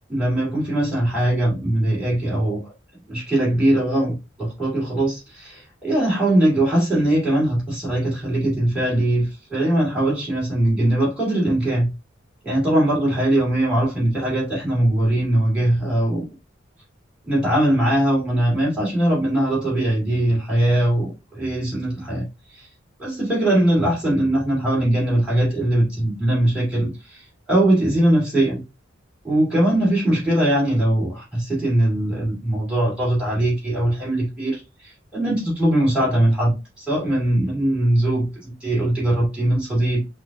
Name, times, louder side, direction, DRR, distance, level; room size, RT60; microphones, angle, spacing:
voice 1, 0.1-2.7 3.1-11.9 12.4-16.3 17.2-22.2 22.5-22.7 23.0-28.6 29.2-40.0, right 1 dB, 5° right, 2.3 m, -21 dB
5.5 x 2.7 x 2.3 m
head